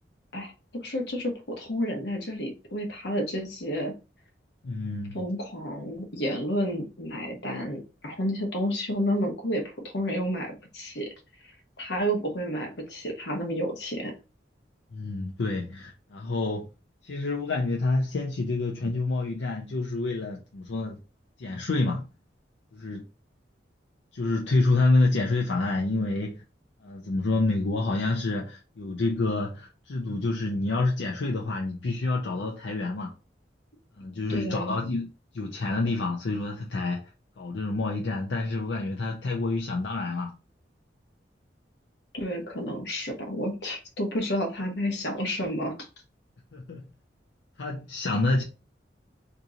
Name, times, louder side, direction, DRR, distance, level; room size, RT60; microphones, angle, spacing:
voice 1, 0.3-3.9 5.1-9.6 9.9-11.1 11.8-14.1 34.3-34.8 42.1-45.9, equal, 65° left, 1.0 m, -30 dB
voice 2, 4.6-5.2 14.9-16.7 17.0-21.0 21.4-22.0 22.7-23.0 24.1-26.4 26.8-33.1 34.0-35.1 35.3-37.1 37.4-40.3 46.5-46.8 47.6-48.4, left 2 dB, 85° left, 0.6 m, -28 dB
2.9 x 2.7 x 3.6 m
head